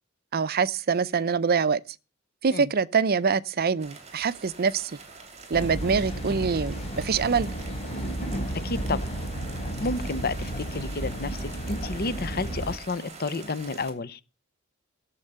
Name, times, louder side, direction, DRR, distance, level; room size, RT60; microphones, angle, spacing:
voice 1, 0.3-1.8 2.4-5.0 5.5-7.5, right 5 dB, 50° right, 0.5 m, -25 dB
sound 1, 3.8-13.9, right 4 dB, 35° right, 2.7 m, -46 dB
sound 2, 5.5-12.7, right 1 dB, 30° left, 4.0 m, -32 dB
voice 2, 8.6-9.2 9.8-14.2, left 3 dB, 50° left, 0.9 m, -31 dB
13.5 x 7.3 x 6.7 m
head